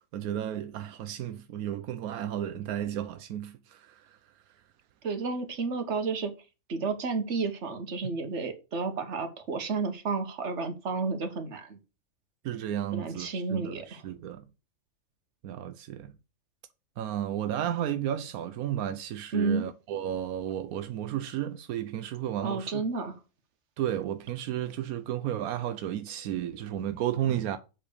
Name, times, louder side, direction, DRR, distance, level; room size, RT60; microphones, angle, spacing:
voice 1, 0.0-4.2 12.4-14.4 15.4-16.1 17.0-22.8 23.8-27.6, right 11 dB, 85° right, 1.1 m, -33 dB
voice 2, 5.0-6.3 6.7-11.8 12.9-14.0 19.3-19.7 22.4-23.2, right 4 dB, 55° right, 1.6 m, -31 dB
7.7 x 4.4 x 6.6 m
omnidirectional pair, 1.5 m